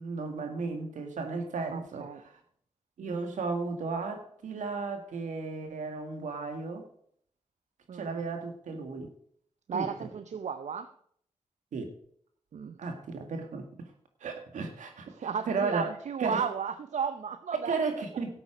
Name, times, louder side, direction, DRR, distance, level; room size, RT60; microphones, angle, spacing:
voice 1, 0.0-2.1 3.0-6.8 7.9-9.1 9.7-9.9 11.7-11.9 12.8-13.9 14.2-15.9 16.2-16.4 17.5-18.4, right 4 dB, 85° right, 1.8 m, -34 dB
voice 2, 1.7-2.2 7.9-8.2 9.7-10.9 12.5-12.8 15.1-17.8, right 6 dB, 70° right, 0.6 m, -34 dB
12.5 x 8.3 x 5.0 m
cardioid pair, 45°, 13 cm